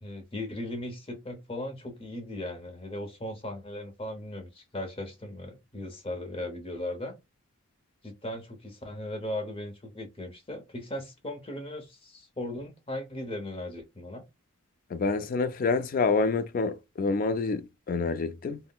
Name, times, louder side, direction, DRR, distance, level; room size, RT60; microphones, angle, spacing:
voice 1, 0.0-7.1 8.0-14.2, left 1 dB, 25° left, 0.7 m, -37 dB
voice 2, 14.9-18.6, left 4 dB, 40° left, 0.3 m, -27 dB
3.6 x 2.1 x 2.2 m
head